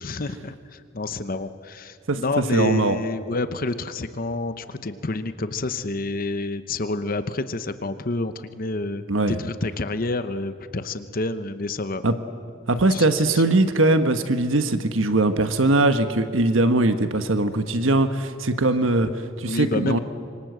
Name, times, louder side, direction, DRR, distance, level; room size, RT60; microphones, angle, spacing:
voice 1, 0.0-12.0 12.8-13.4 19.5-20.0, left 2 dB, 45° left, 11 dB, 0.9 m, -29 dB
voice 2, 2.1-3.0 9.1-9.4 12.0-12.1 12.7-20.0, right 2 dB, 75° right, 9 dB, 1.3 m, -21 dB
26.0 x 24.5 x 8.0 m, 2.3 s
head